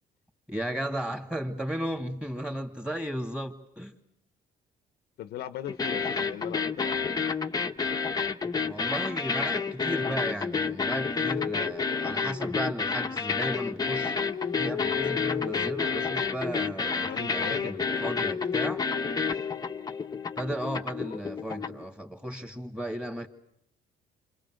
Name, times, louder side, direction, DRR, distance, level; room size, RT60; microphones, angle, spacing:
voice 1, 0.5-3.9 8.6-14.2 14.6-18.9 20.4-23.3, equal, 5° right, 2.9 m, -35 dB
voice 2, 5.2-7.1 17.1-17.8, left 11 dB, 70° left, 1.0 m, -39 dB
sound 1, 5.7-21.8, left 5 dB, 20° left, 1.1 m, -30 dB
sound 2, 11.3-13.0 13.8-16.5 17.3-19.9 21.0-21.6, left 8 dB, 45° left, 1.1 m, -37 dB
29.0 x 25.5 x 6.5 m
cardioid pair, 110°, 17 cm